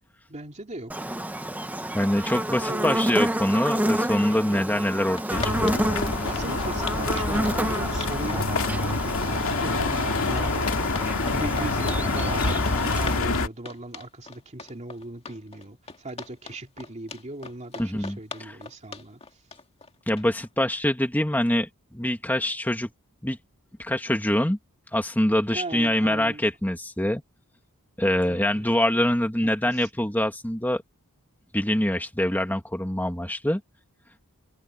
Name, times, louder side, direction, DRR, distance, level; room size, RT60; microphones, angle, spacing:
voice 1, 0.3-1.1 2.7-3.0 4.5-4.6 6.2-9.2 9.6-19.2 25.5-26.4 28.3-28.7 29.4-29.9, right 2 dB, 30° right, 2.5 m, -38 dB
Buzz, 0.9-13.2, right 1 dB, 5° right, 1.1 m, -29 dB
voice 2, 1.9-6.1 17.8-18.6 20.1-22.9 23.2-23.4 23.8-24.6 24.9-27.2 28.0-30.8 31.5-33.6, left 1 dB, 10° left, 1.8 m, -25 dB
sound 1, 4.5-4.6 4.9-20.5, left 4 dB, 30° left, 2.1 m, -39 dB
sound 2, 5.3-13.5, left 3 dB, 65° left, 2.4 m, -26 dB
head